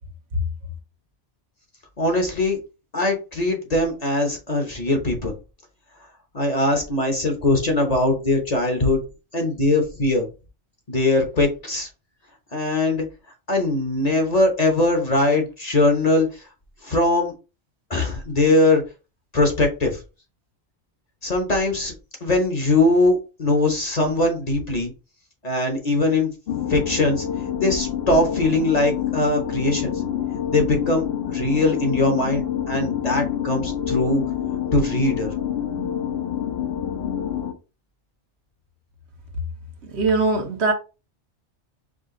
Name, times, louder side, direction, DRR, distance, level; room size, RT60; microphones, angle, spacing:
voice 1, 2.0-2.6 2.9-5.3 6.3-9.0 9.3-10.3 10.9-11.9 12.5-13.0 13.5-16.4 16.8-17.3 17.9-18.8 19.3-20.0 21.2-21.9 22.2-24.9 25.4-26.3 26.7-27.2 27.6-29.9 30.5-34.2 34.7-35.3, left 2 dB, 35° left, 1.0 m, -21 dB
sound 1, 26.5-37.5, left 9 dB, 60° left, 1.1 m, -27 dB
voice 2, 39.8-40.7, right 3 dB, 70° right, 1.2 m, -21 dB
5.0 x 2.4 x 3.7 m
omnidirectional pair, 1.2 m